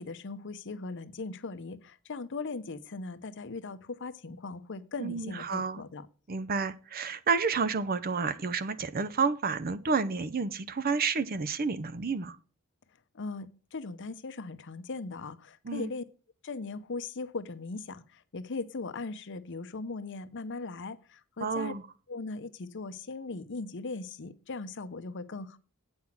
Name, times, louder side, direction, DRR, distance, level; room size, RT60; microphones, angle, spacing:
voice 1, 0.0-6.1 13.1-16.0 16.4-21.7 22.1-25.6, left 3 dB, 55° left, 0.7 m, -39 dB
voice 2, 5.0-5.8 6.3-12.4 15.6-15.9 21.4-21.8, right 5 dB, 40° right, 0.6 m, -30 dB
8.7 x 5.9 x 5.9 m
head